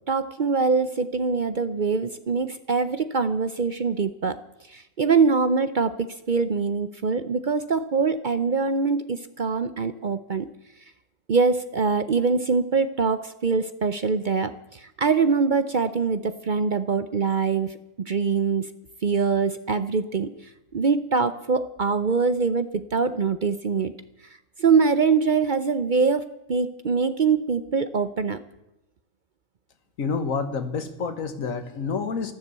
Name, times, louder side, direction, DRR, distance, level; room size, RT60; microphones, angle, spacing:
voice 1, 0.1-4.4 4.7-10.5 11.3-17.7 18.0-18.7 19.0-20.3 20.7-23.9 24.6-28.4, right 5 dB, 50° right, 12 dB, 0.7 m, -23 dB
voice 2, 30.0-32.3, left 5 dB, 80° left, 10 dB, 1.7 m, -28 dB
14.0 x 12.0 x 8.1 m, 0.90 s
omnidirectional pair, 1.4 m